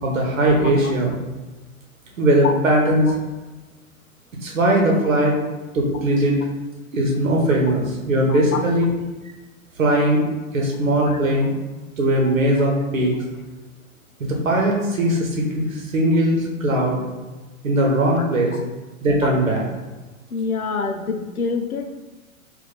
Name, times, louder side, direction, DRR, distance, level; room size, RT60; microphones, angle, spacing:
voice 1, 0.0-1.1 2.2-3.1 4.4-5.3 5.7-6.4 6.9-8.9 9.8-10.3 10.5-11.5 12.0-13.1 14.2-17.0 17.6-18.5 19.0-19.6, right 1 dB, 70° right, -1 dB, 1.0 m, -19 dB
voice 2, 8.3-8.6 11.1-11.2 18.2-18.3 18.5-18.6 20.3-21.9, left 4 dB, 90° left, 6 dB, 0.5 m, -27 dB
3.6 x 2.5 x 4.0 m, 1.2 s
figure-of-eight pair, 110°, 42 cm